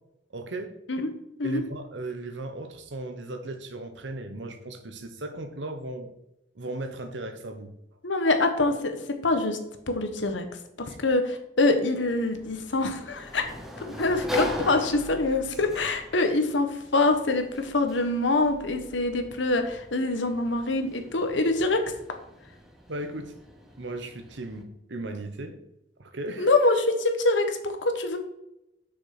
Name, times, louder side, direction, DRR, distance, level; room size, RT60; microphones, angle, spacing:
voice 1, 0.3-0.7 1.4-6.1 6.5-7.7 10.9-11.0 22.9-23.4 23.8-25.6 26.0-26.5, right 2 dB, 80° right, 8 dB, 1.1 m, -36 dB
voice 2, 8.0-9.0 9.2-9.6 9.9-10.5 10.8-21.8 26.4-28.2, left 2 dB, 85° left, 7 dB, 1.2 m, -25 dB
Sliding door, 12.0-24.6, left 1 dB, ahead, 1.0 m, -40 dB
6.4 x 6.2 x 6.0 m, 0.86 s
head